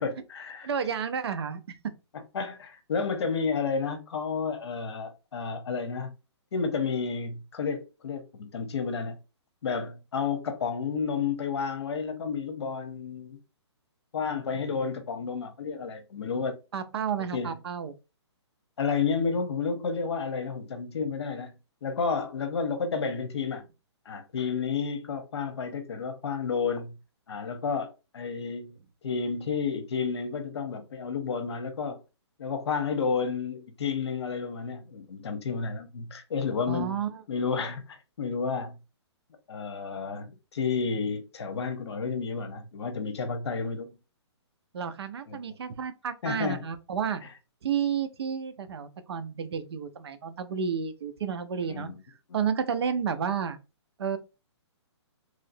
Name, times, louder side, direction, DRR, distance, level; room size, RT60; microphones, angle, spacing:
voice 1, 0.0-0.7 2.3-6.1 6.5-9.2 9.6-13.4 14.1-16.6 17.3-17.6 18.8-21.5 21.8-23.6 24.0-27.0 27.3-27.9 28.1-28.8 29.0-32.0 32.4-37.0 37.3-38.7 39.5-43.9 45.3-45.6 46.2-46.6 51.7-52.0 52.3-52.4, left 5 dB, 65° left, 0.9 m, -31 dB
voice 2, 0.6-1.6 16.7-17.9 36.7-37.2 44.7-47.2 47.6-51.9 52.3-53.6 54.0-54.2, right 7 dB, 60° right, 0.5 m, -31 dB
3.1 x 2.7 x 2.6 m
hypercardioid pair, 165°, 15 cm